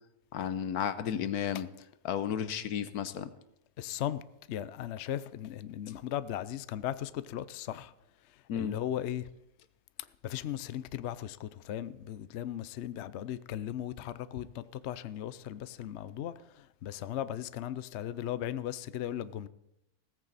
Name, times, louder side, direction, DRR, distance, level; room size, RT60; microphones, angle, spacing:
voice 1, 0.3-1.7 2.0-3.3 8.5-8.8, left 9 dB, 80° left, 1.3 m, -33 dB
voice 2, 3.8-4.2 4.5-7.9 8.3-9.3 10.2-19.5, left 11 dB, 60° left, 0.8 m, -37 dB
16.5 x 14.5 x 4.1 m
omnidirectional pair, 1.6 m